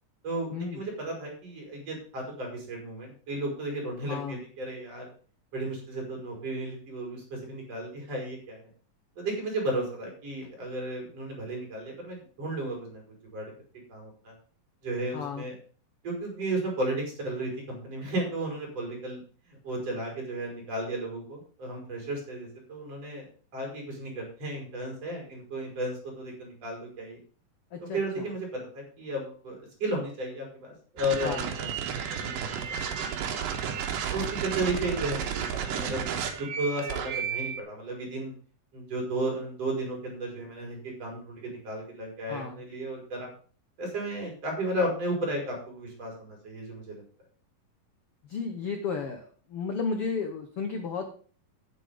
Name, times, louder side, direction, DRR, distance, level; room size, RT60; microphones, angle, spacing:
voice 1, 0.2-5.1 5.5-8.6 9.2-13.0 13.3-13.5 13.9-14.3 14.8-15.5 16.0-19.2 19.5-23.3 23.5-27.2 27.8-31.8 32.1-33.4 34.1-38.3 38.7-43.3 43.8-47.0, right 1 dB, 45° right, 0 dB, 5.1 m, -34 dB
voice 2, 4.1-4.4 15.1-15.5 27.7-28.2 31.2-31.5 42.3-42.6 48.2-49.2 49.5-51.0, left 5 dB, 65° left, 5 dB, 1.4 m, -33 dB
sound 1, 31.0-37.6, right 8 dB, 75° right, 2.9 m, -32 dB
9.5 x 8.3 x 5.1 m, 0.42 s
omnidirectional pair, 4.0 m